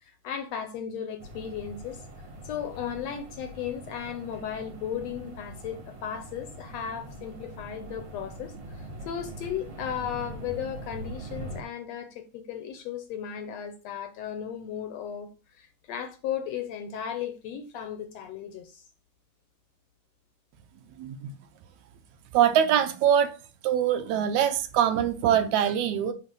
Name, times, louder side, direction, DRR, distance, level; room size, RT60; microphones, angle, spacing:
voice 1, 0.0-2.0 2.4-15.3 15.6-18.8, left 8 dB, 75° left, 1.7 m, -35 dB
sound 1, 1.2-11.6, right 1 dB, 55° right, 2.9 m, -42 dB
voice 2, 21.0-21.3 22.3-23.3 23.6-26.1, right 9 dB, 75° right, 2.0 m, -23 dB
8.4 x 3.2 x 6.0 m
omnidirectional pair, 3.5 m